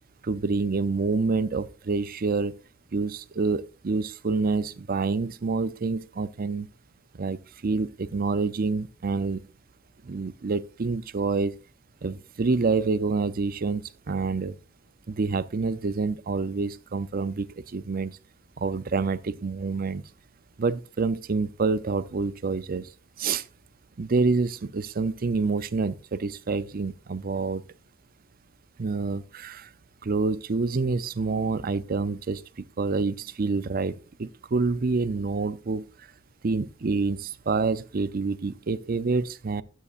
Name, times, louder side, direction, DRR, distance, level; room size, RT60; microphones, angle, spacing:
voice 1, 0.2-2.5 2.9-6.7 7.2-9.4 10.0-11.5 12.0-14.6 15.1-18.2 18.6-20.0 20.6-22.9 23.2-23.5 24.0-27.6 28.8-29.7 30.0-32.4 32.8-35.8 36.4-39.6, right 4 dB, 50° right, 0.5 m, -27 dB
12.5 x 8.3 x 2.5 m
head